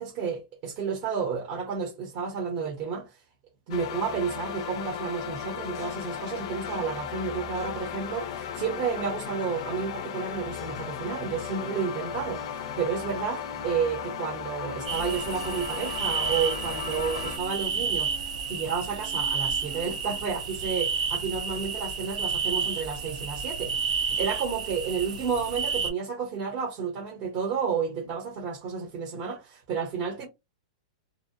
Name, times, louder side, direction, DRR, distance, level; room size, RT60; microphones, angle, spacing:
voice 1, 0.0-3.1 3.7-18.2 18.5-23.7 24.1-30.3, right 6 dB, 25° right, 0.7 m, -31 dB
sound 1, 3.7-17.4, left 8 dB, 45° left, 0.4 m, -36 dB
sound 2, 14.9-25.9, right 5 dB, 85° right, 0.8 m, -31 dB
2.5 x 2.1 x 2.6 m
supercardioid pair, 170°, 4 cm